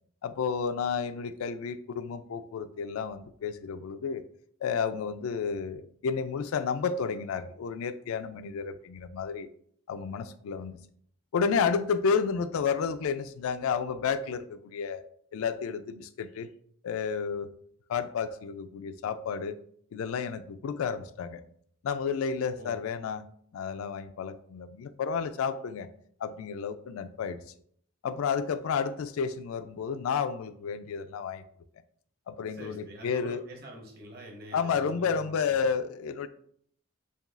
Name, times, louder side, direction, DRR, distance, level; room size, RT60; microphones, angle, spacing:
voice 1, 0.2-4.3 4.6-9.5 9.9-10.8 11.3-15.0 15.3-16.5 16.8-17.5 17.9-19.6 19.9-21.4 21.8-23.2 23.5-25.9 26.2-27.4 28.0-31.4 32.3-33.4 34.5-36.3, left 6 dB, 85° left, 11 dB, 0.3 m, -31 dB
voice 2, 32.4-35.6, right 1 dB, 45° right, 0 dB, 0.9 m, -46 dB
6.8 x 2.3 x 2.4 m, 0.63 s
head